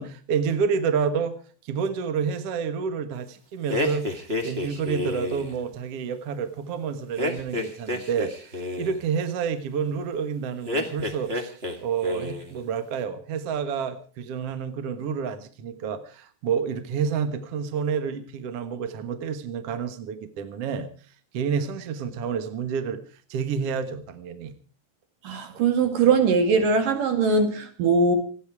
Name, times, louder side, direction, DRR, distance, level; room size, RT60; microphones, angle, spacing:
voice 1, 0.0-1.4 1.6-4.2 4.4-20.9 21.3-23.0 23.3-24.5, right 6 dB, 55° right, 1.9 m, -29 dB
sound 1, 3.7-5.5 7.2-9.0 10.6-11.8 12.0-12.5, left 2 dB, 25° right, 1.3 m, -30 dB
voice 2, 25.2-28.2, right 4 dB, 75° right, 3.8 m, -21 dB
27.5 x 9.5 x 4.8 m
omnidirectional pair, 4.0 m